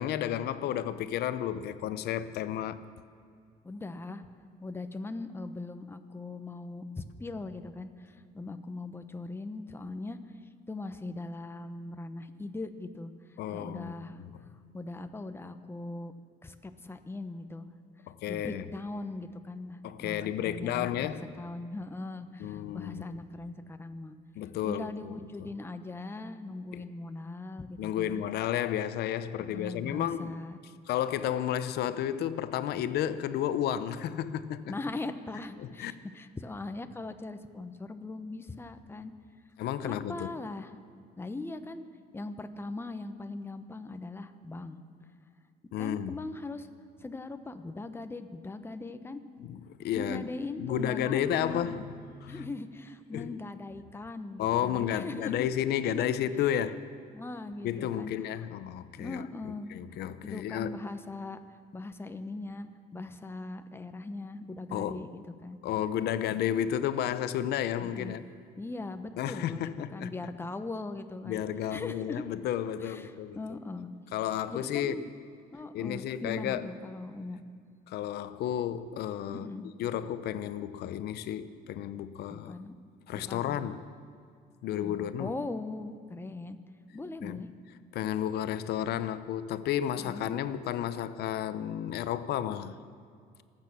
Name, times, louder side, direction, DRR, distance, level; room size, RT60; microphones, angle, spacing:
voice 1, 0.0-2.8 13.4-14.3 18.1-18.6 19.8-21.3 22.4-23.0 24.4-25.2 26.7-26.8 27.8-30.4 30.9-34.7 35.6-35.9 39.6-40.3 45.7-46.2 49.4-50.3 50.6-52.5 53.1-53.3 54.4-56.8 57.6-59.3 59.7-60.8 64.7-65.1 65.6-68.2 69.2-70.1 71.3-73.4 74.1-75.0 75.7-76.7 77.9-79.5 79.8-82.5 83.1-83.8 84.6-85.3 87.2-87.4 87.9-92.7, left 10 dB, 75° left, 0.8 m, -32 dB
voice 2, 3.6-4.3 4.6-10.2 10.7-14.2 14.7-16.1 16.4-17.7 18.3-21.1 21.4-24.2 24.6-28.2 29.4-30.6 34.7-39.1 39.8-40.7 41.2-41.8 42.1-44.8 45.8-46.7 47.0-49.2 49.9-51.9 52.3-55.5 55.9-56.0 56.4-56.5 57.1-58.1 59.0-59.8 60.2-61.4 61.7-65.1 65.4-65.6 67.8-68.1 68.6-71.4 71.7-72.2 72.8-73.9 74.5-75.1 75.5-77.4 79.3-79.7 82.3-82.7 83.2-83.6 84.8-86.6 86.9-87.5 90.0-90.3, left 2 dB, 15° left, 1.0 m, -40 dB
26.0 x 8.8 x 6.1 m
cardioid pair, 110°, 17 cm